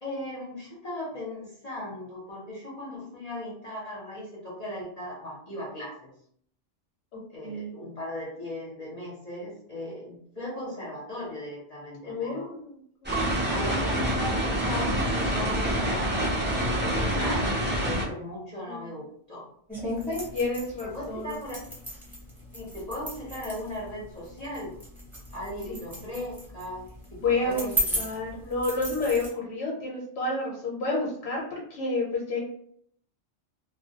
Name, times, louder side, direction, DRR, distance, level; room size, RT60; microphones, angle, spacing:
voice 1, 0.0-6.1 7.3-12.5 13.5-19.5 20.8-21.6 22.5-24.7 25.3-28.1, left 1 dB, 40° left, -6 dB, 0.7 m, -38 dB
voice 2, 7.1-7.7 12.0-13.1 18.6-18.9 20.3-21.4 25.7-25.8 27.2-27.7 27.9-32.4, left 2 dB, 80° left, -3 dB, 0.9 m, -30 dB
sound 1, 13.0-18.0, right 1 dB, 15° right, 0.3 m, -26 dB
Piano, 13.1-15.9 16.5-17.2, right 6 dB, 70° right, 0.8 m, -43 dB
sound 2, 19.7-29.3, equal, ahead, 0.8 m, -35 dB
2.2 x 2.1 x 2.7 m, 0.65 s
omnidirectional pair, 1.2 m